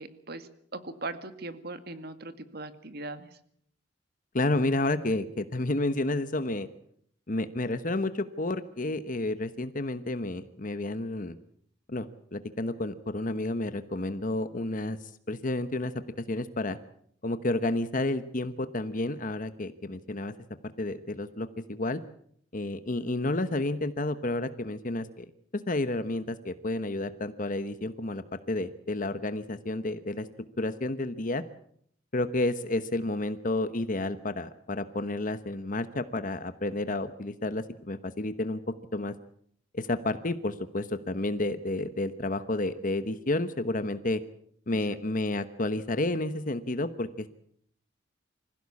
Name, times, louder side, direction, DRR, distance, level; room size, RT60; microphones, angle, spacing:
voice 1, 0.0-3.3, right 2 dB, 55° right, 10 dB, 2.0 m, -39 dB
voice 2, 4.3-6.7 7.3-11.4 11.9-15.9 16.3-16.8 17.2-20.3 20.8-22.0 22.5-25.3 25.7-30.3 30.6-31.4 32.1-38.6 38.9-39.1 39.7-44.2 44.7-47.3, left 2 dB, 45° left, 11 dB, 1.1 m, -31 dB
25.5 x 16.0 x 8.5 m, 0.66 s
head